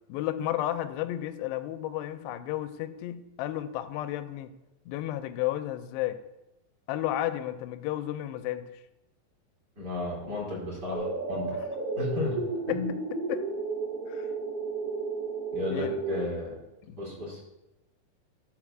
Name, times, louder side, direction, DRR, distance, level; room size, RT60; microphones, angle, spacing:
voice 1, 0.1-4.5 4.9-6.2 6.9-8.7 12.7-12.8 13.1-13.4 14.1-14.3 15.7-16.0 16.8-17.0, left 13 dB, 85° left, 10 dB, 2.6 m, -32 dB
voice 2, 9.8-11.6 12.0-12.4 12.7-12.9 15.5-16.5 17.0-17.4, left 3 dB, 25° right, -5 dB, 3.3 m, -33 dB
sound 1, 10.9-16.2, right 4 dB, 60° right, 1.6 m, -33 dB
12.5 x 4.8 x 6.0 m, 0.96 s
omnidirectional pair, 5.0 m